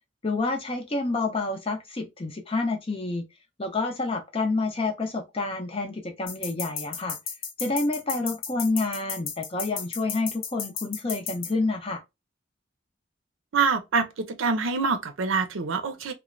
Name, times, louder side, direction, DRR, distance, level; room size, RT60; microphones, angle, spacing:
voice 1, 0.2-3.3 3.6-7.2 7.6-12.0, left 3 dB, 30° left, 0.6 m, -28 dB
sound 1, 6.3-11.5, left 6 dB, 80° left, 0.7 m, -34 dB
voice 2, 13.5-14.1 14.4-16.1, right 5 dB, 85° right, 0.5 m, -25 dB
3.0 x 2.1 x 2.5 m
head